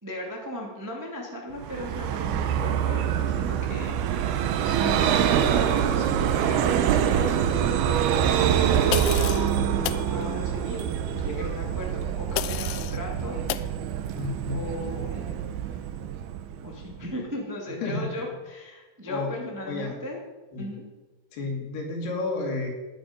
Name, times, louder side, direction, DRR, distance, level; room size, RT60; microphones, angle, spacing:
voice 1, 0.0-9.4 9.6-10.8 11.1-13.4 14.5-15.8 16.6-20.3 20.5-20.9, equal, 15° right, -2 dB, 0.7 m, -37 dB
Vehicle, 1.6-17.0, right 9 dB, 75° right, 2.5 m, -25 dB
sound 1, 8.9-9.5 9.8-10.1 12.4-13.0 13.5-13.7, left 15 dB, 85° left, 2.4 m, -30 dB
voice 2, 14.1-14.6 17.8-18.3 19.1-19.3 19.7-20.0 20.5-20.7 21.3-22.7, left 3 dB, 65° left, 1 dB, 4.4 m, -31 dB
19.0 x 9.6 x 5.3 m, 1.2 s
omnidirectional pair, 5.3 m